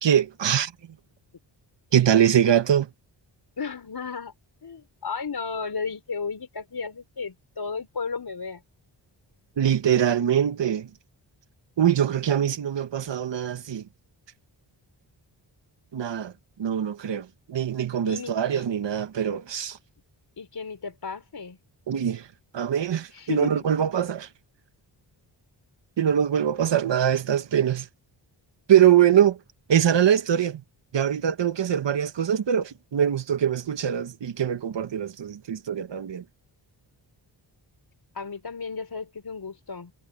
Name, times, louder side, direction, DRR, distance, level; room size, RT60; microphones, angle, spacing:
voice 1, 0.0-0.7 1.9-2.9 9.6-10.9 11.8-13.8 15.9-16.3 16.6-19.8 21.9-22.3 22.5-24.3 26.0-27.9 28.7-29.4 29.7-30.6 30.9-36.2, right 9 dB, 65° right, 1.4 m, -23 dB
voice 2, 3.6-4.3 4.6-8.6 18.0-18.6 20.4-21.6 23.1-23.7 38.1-39.9, left 5 dB, 50° left, 5.1 m, -34 dB
cardioid pair, 70°, 47 cm